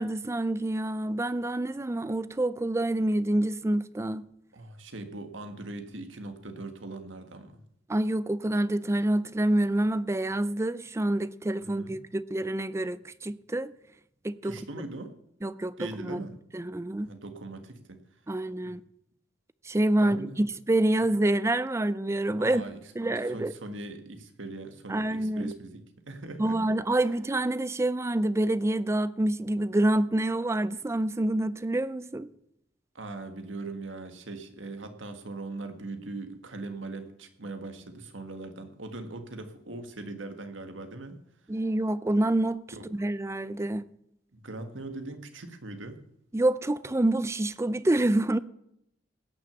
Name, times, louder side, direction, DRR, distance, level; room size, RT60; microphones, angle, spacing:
voice 1, 0.0-4.3 7.9-13.7 14.2-14.5 15.4-15.7 16.0-16.2 16.5-17.1 18.3-18.8 19.7-22.6 23.0-23.5 24.9-25.5 26.4-32.3 41.5-42.6 42.9-43.8 46.3-48.4, right 1 dB, 15° right, 0.4 m, -27 dB
voice 2, 4.5-7.6 11.6-12.0 14.4-15.1 15.8-16.3 17.0-18.0 18.6-18.8 20.0-20.5 21.0-21.1 22.4-26.6 32.9-41.2 42.7-42.9 44.3-46.0, right 2 dB, 90° right, 1.7 m, -40 dB
17.0 x 6.3 x 7.1 m
head